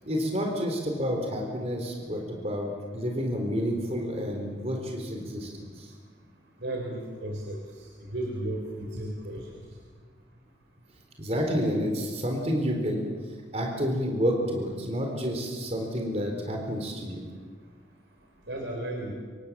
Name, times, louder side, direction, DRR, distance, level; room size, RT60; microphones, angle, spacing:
voice 1, 0.0-5.5 5.8-5.9 11.2-13.0 13.5-17.2, equal, 35° right, 2 dB, 4.0 m, -29 dB
voice 2, 6.6-7.6 8.1-9.4 18.5-19.1, right 1 dB, 85° right, 1 dB, 4.0 m, -34 dB
27.0 x 24.0 x 7.6 m, 1.5 s
head